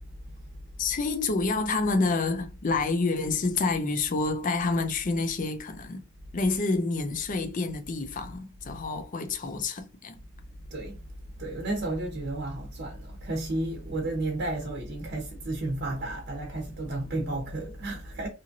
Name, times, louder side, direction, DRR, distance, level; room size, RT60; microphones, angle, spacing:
voice 1, 0.8-6.0 6.3-10.2, left 3 dB, 40° left, 0.5 m, -28 dB
voice 2, 10.7-11.1 11.4-18.3, right 2 dB, 50° right, 0.8 m, -32 dB
2.9 x 2.5 x 2.5 m
head